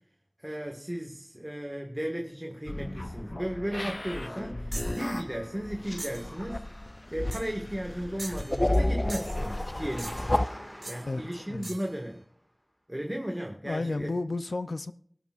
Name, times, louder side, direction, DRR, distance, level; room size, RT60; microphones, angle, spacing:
voice 1, 0.4-6.6 7.1-10.3 10.8-12.2 12.9-14.1, equal, 15° right, 1.7 m, -35 dB
sound 1, 2.7-10.5, left 1 dB, 40° left, 0.4 m, -32 dB
sound 2, 4.7-5.0 6.0-6.3 7.3-7.6 8.2-8.8 9.1-9.4 10.0-10.4 10.8-11.0 11.6-11.9, right 1 dB, 50° right, 3.1 m, -41 dB
Engine, 6.6-12.3, equal, 10° left, 2.0 m, -48 dB
voice 2, 11.1-11.8 13.6-14.9, left 2 dB, 90° left, 0.5 m, -33 dB
23.5 x 12.0 x 2.5 m
wide cardioid pair, 40°, 0 cm